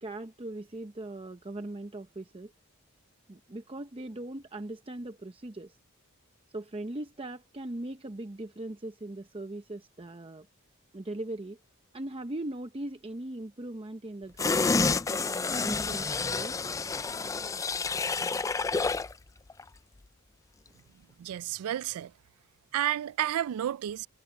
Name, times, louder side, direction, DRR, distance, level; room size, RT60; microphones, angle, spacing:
voice 1, 0.0-2.5 3.3-5.8 6.5-10.5 10.9-11.6 11.9-16.6, right 1 dB, 25° right, 0.7 m, -40 dB
sound 1, 14.4-19.1 19.5-19.6, left 4 dB, 15° left, 0.3 m, -29 dB
voice 2, 21.2-22.1 22.7-24.1, right 11 dB, 75° right, 0.3 m, -31 dB
head